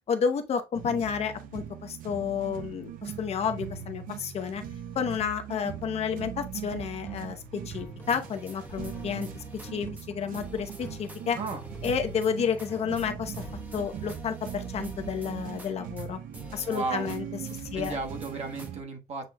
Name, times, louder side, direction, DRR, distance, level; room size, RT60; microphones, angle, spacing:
voice 1, 0.1-4.6 4.9-9.4 9.7-11.4 11.8-13.4 13.7-16.2 16.5-17.2 17.7-18.0, left 7 dB, 40° left, 0.7 m, -31 dB
sound 1, 0.7-18.8, right 9 dB, 55° right, 0.7 m, -40 dB
sound 2, 6.1-14.3, left 2 dB, 10° left, 1.0 m, -49 dB
sound 3, 8.0-9.7 10.0-10.1 10.3-12.7 13.0-13.1 13.3-16.1 16.3-17.2 17.5-18.7, right 1 dB, 10° right, 0.8 m, -47 dB
voice 2, 16.7-17.1 17.7-19.3, right 3 dB, 40° right, 1.1 m, -34 dB
7.6 x 3.0 x 2.2 m
cardioid pair, 160°, 16 cm